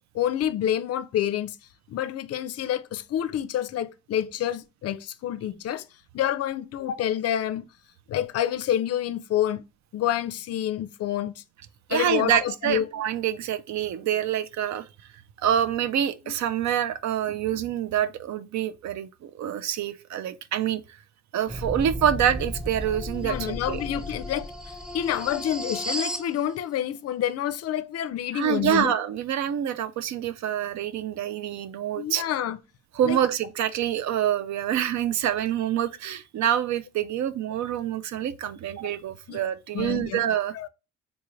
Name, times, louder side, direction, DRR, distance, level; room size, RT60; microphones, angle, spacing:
voice 1, 0.1-1.6 1.9-5.8 6.1-7.7 8.1-9.6 9.9-11.4 11.9-12.9 23.2-28.9 32.0-32.6 33.0-33.2 39.3-39.4 39.7-40.2 40.5-40.7, left 11 dB, 55° left, 0.4 m, -28 dB
voice 2, 11.9-14.8 15.4-20.8 21.3-23.8 28.3-32.2 33.0-40.5, right 10 dB, 65° right, 0.5 m, -26 dB
sound 1, 21.5-26.3, equal, ahead, 0.4 m, -34 dB
3.7 x 2.5 x 3.1 m
cardioid pair, 90°, 30 cm